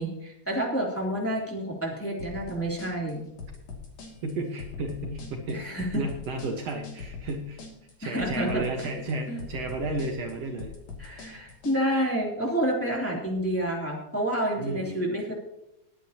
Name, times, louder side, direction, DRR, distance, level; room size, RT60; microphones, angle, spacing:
voice 1, 0.0-3.2 5.5-6.0 8.0-8.6 9.3-9.4 11.0-15.3, right 1 dB, 5° left, -2 dB, 2.8 m, -29 dB
sound 1, 2.2-11.8, left 5 dB, 60° left, 3.6 m, -42 dB
voice 2, 4.2-7.6 8.0-10.7 14.6-15.1, right 2 dB, 60° right, 2 dB, 2.3 m, -33 dB
21.0 x 9.3 x 2.9 m, 0.86 s
omnidirectional pair, 3.4 m